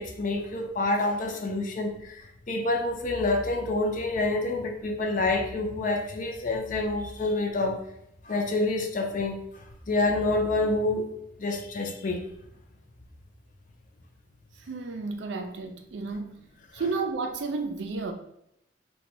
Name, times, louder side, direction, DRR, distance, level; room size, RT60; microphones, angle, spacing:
voice 1, 0.0-7.8 8.2-11.1 11.4-12.3, left 2 dB, 45° left, 3 dB, 0.5 m, -28 dB
voice 2, 14.7-16.3 16.7-18.1, right 4 dB, 70° right, 5 dB, 0.4 m, -32 dB
2.6 x 2.2 x 4.0 m, 0.78 s
head